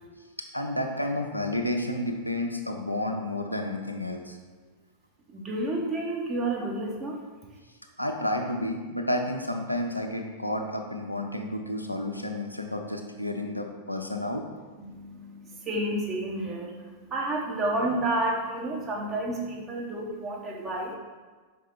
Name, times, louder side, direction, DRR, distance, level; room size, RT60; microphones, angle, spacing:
voice 1, 0.5-4.4 8.0-14.4, left 1 dB, 90° left, 3 dB, 0.5 m, -31 dB
voice 2, 5.3-7.1 14.8-21.0, right 1 dB, 25° right, -2 dB, 1.3 m, -30 dB
5.3 x 4.6 x 3.8 m, 1.4 s
figure-of-eight pair, 90°, 0 cm